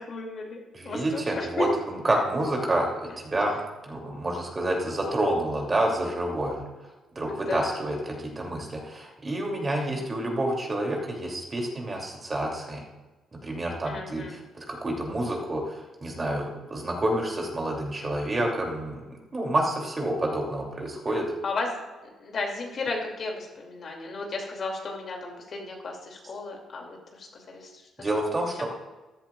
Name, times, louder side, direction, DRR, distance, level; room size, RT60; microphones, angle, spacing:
voice 1, 0.0-0.6 0.8-1.7 7.3-7.8 9.8-10.1 13.8-14.4 21.1-21.8 22.2-27.7 28.0-28.7, left 3 dB, 50° left, 0 dB, 2.6 m, -34 dB
voice 2, 0.7-6.7 7.1-12.8 13.3-21.3 28.0-28.7, right 1 dB, 30° right, 0 dB, 2.9 m, -29 dB
14.5 x 10.5 x 2.5 m, 1.2 s
cardioid pair, 90°, 0 cm